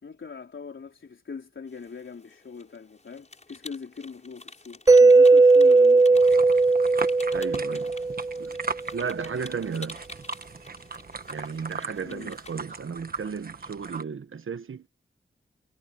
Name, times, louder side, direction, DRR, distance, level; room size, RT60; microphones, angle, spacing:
voice 1, 0.0-6.2 12.0-12.3, left 5 dB, 65° left, 3.9 m, -41 dB
sound 1, 1.7-12.8, left 3 dB, 35° left, 5.8 m, -49 dB
Mallet percussion, 4.9-8.6, right 3 dB, 15° right, 0.5 m, -17 dB
sound 2, 6.1-14.0, right 4 dB, 45° right, 1.3 m, -38 dB
voice 2, 7.3-7.9 8.4-8.6 8.9-10.0 11.3-14.9, right 6 dB, 75° right, 1.2 m, -34 dB
wide cardioid pair, 120°, 21 cm